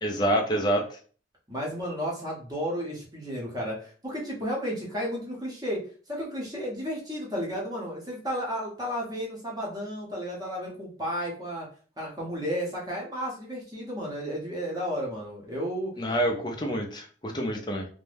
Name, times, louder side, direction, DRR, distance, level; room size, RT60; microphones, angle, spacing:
voice 1, 0.0-1.0 16.0-17.9, right 1 dB, 25° left, 2 dB, 0.5 m, -27 dB
voice 2, 1.5-5.8 6.1-11.7 12.0-15.9, equal, 20° right, -3 dB, 0.7 m, -33 dB
2.5 x 2.1 x 3.3 m, 0.42 s
head